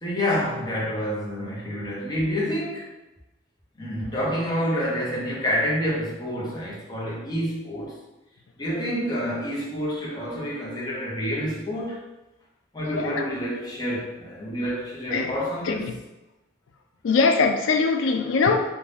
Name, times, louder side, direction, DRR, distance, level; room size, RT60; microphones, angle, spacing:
voice 1, 0.0-2.9 3.8-8.0 8.6-12.0 12.7-15.9, equal, 20° left, -6 dB, 0.7 m, -28 dB
voice 2, 17.0-18.6, left 4 dB, 75° left, 4 dB, 0.4 m, -21 dB
2.6 x 2.2 x 3.3 m, 1.0 s
head